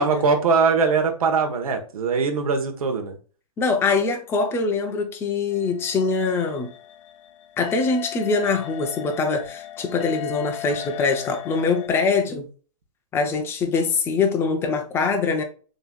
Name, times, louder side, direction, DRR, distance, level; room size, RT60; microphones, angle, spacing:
voice 1, 0.0-3.2, right 4 dB, 90° right, 1.3 m, -21 dB
voice 2, 3.6-6.7 7.6-12.5 13.1-15.4, left 4 dB, 15° left, 0.6 m, -23 dB
sound 1, 5.5-11.9, left 13 dB, 60° left, 0.7 m, -37 dB
6.5 x 3.1 x 2.3 m
hypercardioid pair, 155°, 18 cm